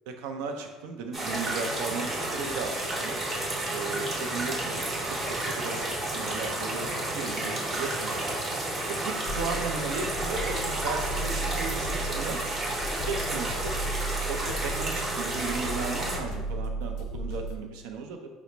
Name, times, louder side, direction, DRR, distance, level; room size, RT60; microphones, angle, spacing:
voice 1, 0.1-3.2 3.7-5.2 5.4-5.8 6.1-8.4 8.9-12.4 13.1-13.7 14.3-18.3, right 4 dB, 90° right, 4 dB, 0.4 m, -36 dB
sound 1, 1.1-16.2, right 1 dB, 20° right, 0.7 m, -31 dB
sound 2, 9.3-17.6, right 2 dB, 55° left, 0.4 m, -35 dB
3.9 x 2.0 x 4.3 m, 1.3 s
cardioid pair, 170°, 0 cm